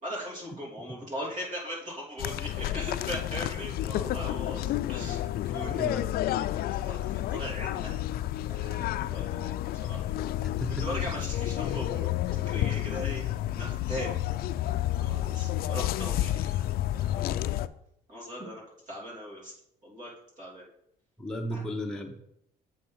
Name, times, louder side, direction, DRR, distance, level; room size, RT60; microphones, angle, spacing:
voice 1, 0.0-5.2 5.5-6.0 6.5-8.0 8.5-9.5 9.8-10.0 10.8-13.2 13.5-14.2 14.9-16.7 16.9-17.6 18.1-19.5 19.8-20.1 20.4-20.7 21.5-21.6, equal, 50° right, -4 dB, 3.3 m, -39 dB
sound 1, 2.2-17.7, left 13 dB, 65° left, 0.4 m, -30 dB
voice 2, 5.7-6.0 10.3-10.9 18.4-18.5 21.2-22.1, equal, 5° left, 0 dB, 0.8 m, -35 dB
7.6 x 4.1 x 5.6 m, 0.74 s
cardioid pair, 110°, 17 cm